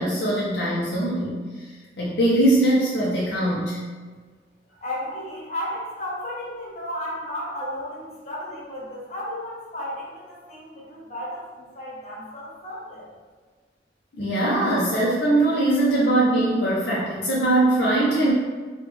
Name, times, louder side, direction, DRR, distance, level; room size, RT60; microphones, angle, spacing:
voice 1, 0.0-1.7 2.0-3.8 14.2-18.3, right 1 dB, 70° left, -5 dB, 0.6 m, -21 dB
voice 2, 4.8-13.1, left 1 dB, 40° left, -6 dB, 1.0 m, -34 dB
3.2 x 2.3 x 3.3 m, 1.4 s
head